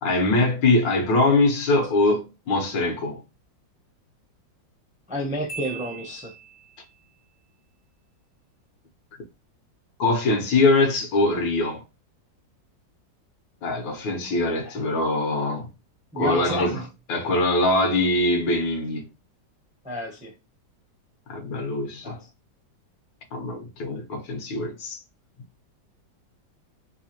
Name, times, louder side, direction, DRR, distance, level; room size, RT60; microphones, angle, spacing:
voice 1, 0.0-3.2 10.0-11.8 13.6-15.7 16.2-16.8 17.1-19.1 21.3-22.2 23.3-25.0, left 2 dB, 80° left, 1.7 m, -23 dB
voice 2, 5.1-6.3 14.6-14.9 16.1-16.9 19.8-20.3 22.0-22.2, equal, 10° right, 0.4 m, -31 dB
Marimba xylophone, 5.5-6.9, right 6 dB, 55° left, 0.5 m, -39 dB
3.7 x 2.8 x 2.9 m
omnidirectional pair, 2.0 m